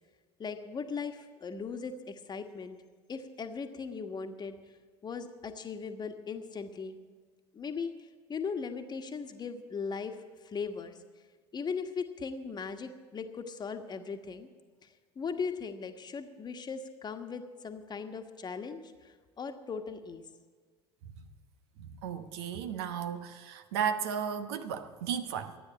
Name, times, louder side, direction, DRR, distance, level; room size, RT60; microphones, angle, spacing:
voice 1, 0.4-2.8 3.1-4.6 5.0-7.0 7.5-7.9 8.3-10.2 10.4-11.0 11.5-14.5 14.8-14.9 15.1-20.2, left 5 dB, 30° left, 6 dB, 1.4 m, -38 dB
voice 2, 21.8-25.6, right 8 dB, 70° right, 9 dB, 1.0 m, -34 dB
13.0 x 9.3 x 8.7 m, 1.5 s
figure-of-eight pair, 70°, 14 cm